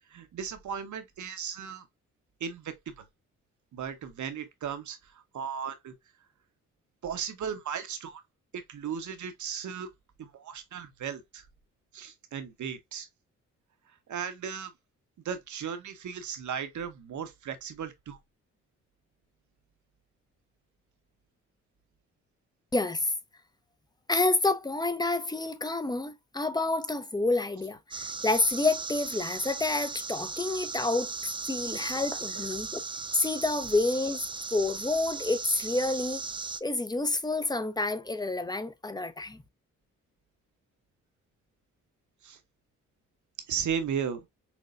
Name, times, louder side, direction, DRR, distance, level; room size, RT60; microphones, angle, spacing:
voice 1, 0.1-1.9 2.4-3.1 3.7-5.9 7.0-8.2 8.5-9.9 10.2-11.5 11.9-13.1 13.9-14.7 15.2-18.2 42.2-42.4 43.5-44.3, right 7 dB, 60° right, 1.0 m, -36 dB
voice 2, 22.7-23.1 24.1-31.1 31.5-32.8 33.1-34.2 34.5-36.2 36.6-39.4, left 2 dB, 10° left, 0.7 m, -28 dB
sound 1, 27.9-36.6, right 4 dB, 15° right, 0.4 m, -37 dB
6.0 x 2.2 x 2.5 m
supercardioid pair, 60°, 32 cm